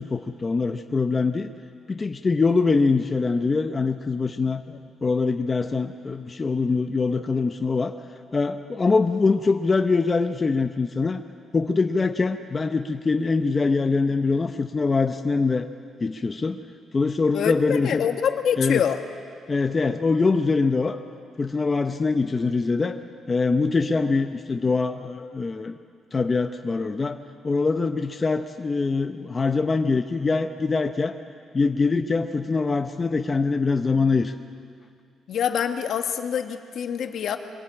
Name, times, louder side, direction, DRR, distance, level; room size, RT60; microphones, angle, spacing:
voice 1, 0.0-1.5 1.9-4.6 5.0-7.9 8.3-11.2 11.5-15.7 16.0-16.6 16.9-18.0 18.6-18.8 19.5-21.0 21.4-23.0 23.3-25.7 26.1-31.2 31.5-34.3, left 4 dB, 25° left, 7 dB, 0.7 m, -23 dB
voice 2, 17.3-19.0 35.3-37.4, left 8 dB, 65° left, 6 dB, 1.3 m, -25 dB
23.5 x 14.5 x 8.8 m, 2.3 s
cardioid pair, 110°, 0 cm